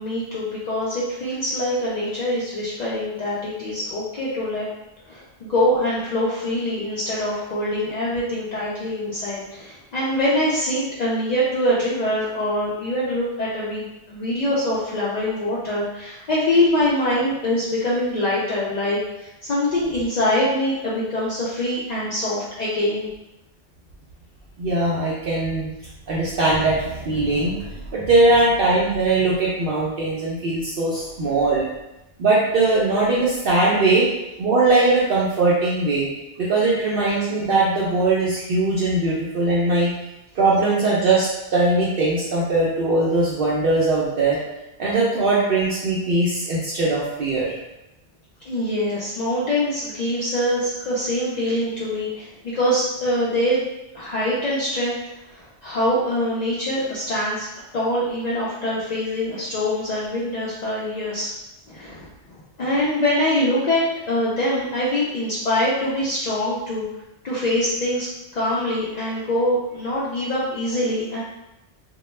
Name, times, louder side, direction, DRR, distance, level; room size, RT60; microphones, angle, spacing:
voice 1, 0.0-4.7 5.1-23.1 31.3-31.4 48.5-53.6 53.9-55.0 55.3-57.5 57.7-61.3 61.7-62.1 62.6-66.9 67.2-68.1 68.3-71.2, left 1 dB, 65° left, -7 dB, 0.4 m, -24 dB
voice 2, 24.6-25.7 26.1-31.7 32.2-34.1 34.4-36.1 36.4-39.9 40.3-44.4 44.8-47.6, right 2 dB, 60° right, -7 dB, 0.6 m, -20 dB
2.2 x 2.1 x 3.0 m, 0.95 s
omnidirectional pair, 1.2 m